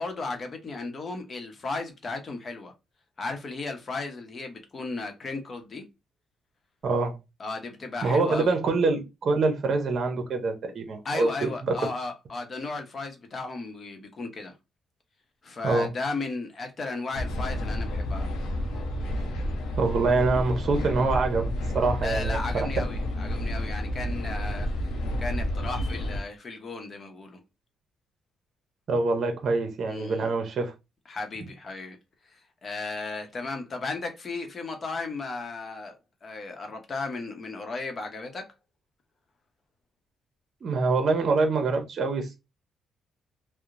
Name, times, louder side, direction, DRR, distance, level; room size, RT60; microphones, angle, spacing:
voice 1, 0.0-2.7 3.2-5.8 7.4-8.6 11.0-14.5 15.4-18.3 22.0-27.4 29.9-30.3 31.1-32.0 32.3-38.5, left 3 dB, 40° left, 0.8 m, -35 dB
voice 2, 6.8-7.2 8.0-11.7 15.6-15.9 19.7-22.8 28.9-30.7 40.6-42.4, right 3 dB, 55° right, 0.7 m, -25 dB
sound 1, 17.1-26.2, equal, 85° left, 0.6 m, -30 dB
2.8 x 2.1 x 2.5 m
cardioid pair, 90°, 0 cm